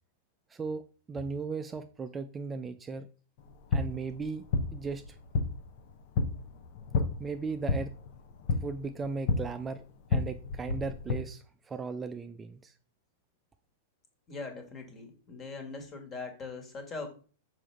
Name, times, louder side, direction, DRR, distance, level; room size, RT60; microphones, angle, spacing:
voice 1, 0.5-0.8 1.1-3.1 3.7-4.4 4.7-5.2 7.2-7.9 8.6-9.8 10.1-12.7, right 4 dB, 20° right, 0.4 m, -37 dB
sound 1, 3.4-11.2, left 4 dB, 50° left, 0.9 m, -32 dB
voice 2, 14.3-17.1, left 4 dB, 30° left, 1.6 m, -41 dB
6.1 x 4.6 x 3.3 m
figure-of-eight pair, 100°, 0 cm